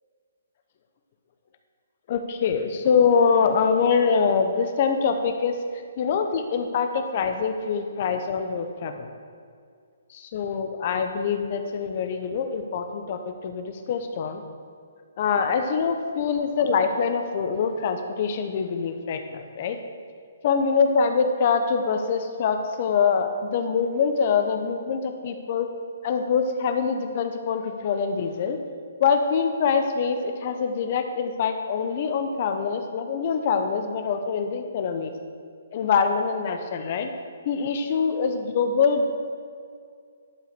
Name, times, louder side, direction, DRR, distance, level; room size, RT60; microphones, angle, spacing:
voice 1, 2.1-5.6 6.0-9.1 10.1-14.4 15.2-19.8 20.4-25.7 26.0-28.6 29.0-35.1 35.7-37.1 37.4-39.1, left 6 dB, 40° left, 7 dB, 0.8 m, -24 dB
11.5 x 4.9 x 6.7 m, 2.2 s
hypercardioid pair, 155°, 0 cm